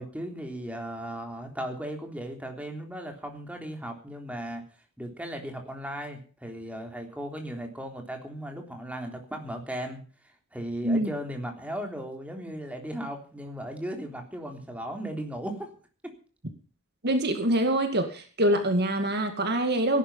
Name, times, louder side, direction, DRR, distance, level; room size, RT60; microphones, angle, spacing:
voice 1, 0.0-4.6 5.0-10.0 10.5-15.7, right 1 dB, 5° right, 3 dB, 3.4 m, -36 dB
voice 2, 17.0-20.0, right 1 dB, 50° right, 6 dB, 2.2 m, -25 dB
17.5 x 11.0 x 5.6 m, 0.39 s
head